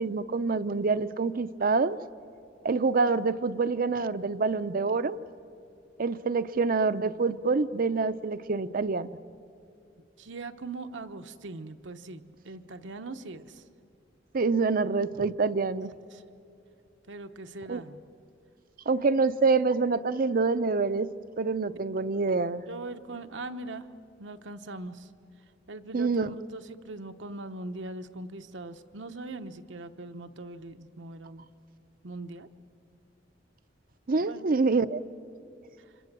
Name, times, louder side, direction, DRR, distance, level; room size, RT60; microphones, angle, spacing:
voice 1, 0.0-2.0 2.6-5.2 6.0-9.1 14.3-15.9 17.7-17.8 18.9-21.1 21.4-22.6 25.9-26.3 34.1-35.0, right 4 dB, 50° right, 13 dB, 0.6 m, -26 dB
voice 2, 10.2-13.6 16.1-16.2 17.1-18.0 22.7-23.9 24.2-25.1 25.7-31.4 32.0-32.5 34.2-34.5, right 2 dB, 75° right, 8 dB, 1.0 m, -41 dB
30.0 x 25.5 x 7.5 m, 2.6 s
head